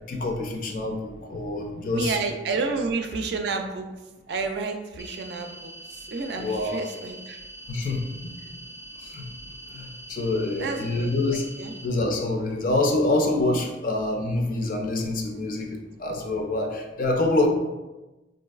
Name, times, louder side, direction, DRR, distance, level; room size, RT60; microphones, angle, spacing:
voice 1, 0.1-2.2 6.3-6.8 7.7-8.0 9.0-9.3 9.7-11.5 11.8-17.5, left 2 dB, 50° left, 2 dB, 0.4 m, -26 dB
voice 2, 1.9-3.9 4.3-7.4 10.6-11.1 11.6-11.7, right 4 dB, 65° right, 5 dB, 0.4 m, -30 dB
sound 1, 5.0-11.8, right 1 dB, 85° left, 1.2 m, -43 dB
3.8 x 2.5 x 2.3 m, 1.1 s
head